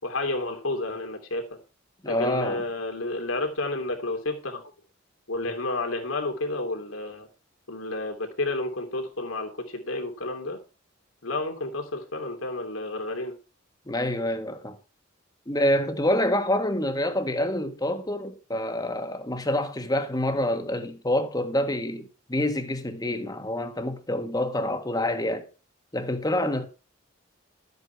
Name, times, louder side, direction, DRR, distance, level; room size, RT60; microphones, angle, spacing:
voice 1, 0.0-1.4 2.0-4.6 5.3-7.3 7.7-10.6 11.2-13.3, left 2 dB, 80° left, 2.9 m, -30 dB
voice 2, 2.0-2.6 13.9-14.8 15.5-25.5 25.9-26.7, left 1 dB, 20° left, 1.4 m, -27 dB
12.5 x 8.1 x 4.6 m
head